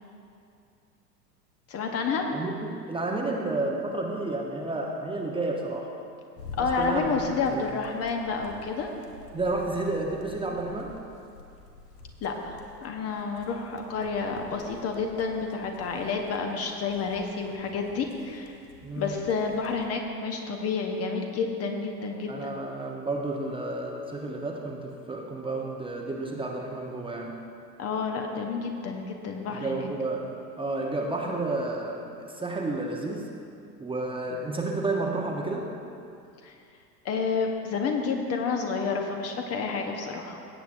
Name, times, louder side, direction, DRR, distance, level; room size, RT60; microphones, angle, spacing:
voice 1, 1.7-2.3 6.6-8.9 12.2-12.6 12.8-18.5 19.0-22.4 27.8-29.9 36.4-36.5 37.0-40.4, left 4 dB, 30° left, 3 dB, 0.9 m, -30 dB
voice 2, 2.3-5.9 6.5-7.6 9.3-11.0 18.8-19.1 22.3-27.4 29.5-30.3 30.6-33.3 33.8-35.7, right 2 dB, 10° right, -1 dB, 0.9 m, -31 dB
sound 1, 6.4-19.9, left 3 dB, 75° left, 1.3 m, -48 dB
17.0 x 8.1 x 2.6 m, 2.6 s
figure-of-eight pair, 85°, 49 cm